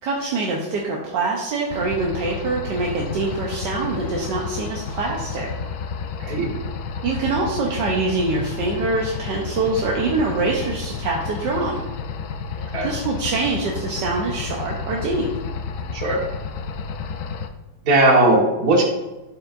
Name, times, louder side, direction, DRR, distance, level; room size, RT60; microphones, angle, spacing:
voice 1, 0.0-5.5 7.0-11.8 12.6-15.3, right 3 dB, 75° right, -2 dB, 1.5 m, -24 dB
sound 1, 1.7-17.5, left 5 dB, 75° left, 0.7 m, -31 dB
voice 2, 6.2-6.5 12.7-12.9 15.9-16.2 17.9-18.8, right 2 dB, 60° right, -1 dB, 1.9 m, -17 dB
12.5 x 4.6 x 2.6 m, 1.1 s
omnidirectional pair, 1.9 m